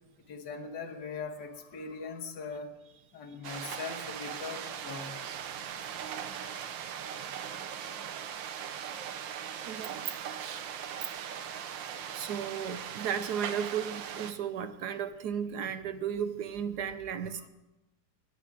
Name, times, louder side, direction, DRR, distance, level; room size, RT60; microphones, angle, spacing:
voice 1, 0.3-2.8 3.1-5.2 17.4-17.5, left 5 dB, 70° left, 2 dB, 1.9 m, -40 dB
sound 1, 3.4-14.3, right 8 dB, 90° right, 1.6 m, -39 dB
voice 2, 9.6-10.1 10.4-10.6 11.2-11.3 12.1-17.5, right 8 dB, 70° right, 11 dB, 1.2 m, -35 dB
20.5 x 9.5 x 4.9 m, 0.99 s
omnidirectional pair, 2.0 m